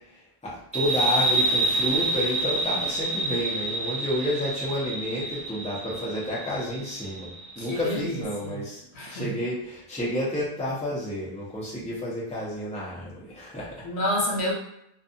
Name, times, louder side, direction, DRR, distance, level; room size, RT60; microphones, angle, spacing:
voice 1, 0.1-7.3 7.6-8.8 9.1-13.9, left 1 dB, 5° left, -7 dB, 0.7 m, -30 dB
sound 1, 0.7-7.9, right 2 dB, 55° right, 0.4 m, -28 dB
voice 2, 7.6-8.6 9.0-9.3 13.8-14.5, left 1 dB, 80° left, -3 dB, 1.1 m, -29 dB
2.4 x 2.4 x 2.6 m, 0.76 s
omnidirectional pair, 1.1 m